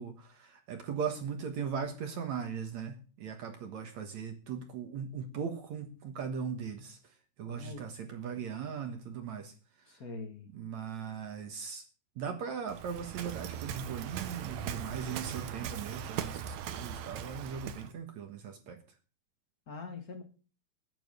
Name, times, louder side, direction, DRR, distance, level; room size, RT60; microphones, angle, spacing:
voice 1, 0.0-7.0 7.4-9.5 10.5-11.8 12.2-18.8, right 6 dB, 60° right, 6 dB, 2.0 m, -39 dB
voice 2, 7.5-7.8 8.4-8.5 9.9-10.5 19.7-20.2, left 3 dB, 90° left, 5 dB, 0.8 m, -43 dB
Waves surf, 12.7-17.9, right 9 dB, 85° right, 1.5 m, -39 dB
11.5 x 9.2 x 6.6 m, 0.37 s
omnidirectional pair, 4.6 m